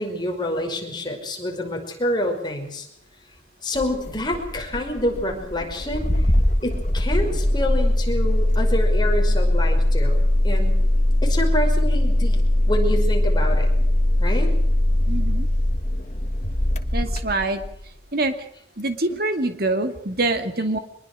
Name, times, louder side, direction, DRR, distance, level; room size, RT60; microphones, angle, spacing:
voice 1, 0.0-2.9 3.6-6.1 6.6-10.8 11.2-13.7 14.2-14.5, left 1 dB, 25° left, 2 dB, 5.5 m, -27 dB
Engine starting, 3.7-17.9, left 1 dB, 40° left, 1.6 m, -20 dB
voice 2, 15.1-15.5 16.9-17.6 18.1-18.3 18.8-20.8, right 2 dB, 55° right, 7 dB, 2.3 m, -24 dB
24.5 x 21.5 x 6.4 m, 0.68 s
head